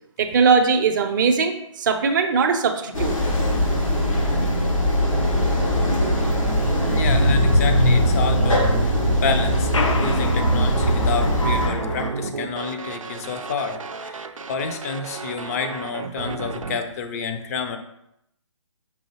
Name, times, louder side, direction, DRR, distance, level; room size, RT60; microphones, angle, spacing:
voice 1, 0.2-3.2, right 5 dB, 40° right, 6 dB, 0.5 m, -20 dB
sound 1, 2.9-11.7, equal, 85° left, 1.2 m, -20 dB
sound 2, 5.0-16.8, right 4 dB, 90° right, 0.4 m, -31 dB
voice 2, 6.9-9.7 10.0-17.8, left 5 dB, 30° left, 6 dB, 0.5 m, -29 dB
sound 3, 9.7-12.1, left 1 dB, 70° left, 0.6 m, -26 dB
5.4 x 2.6 x 2.9 m, 0.79 s
figure-of-eight pair, 140°, 16 cm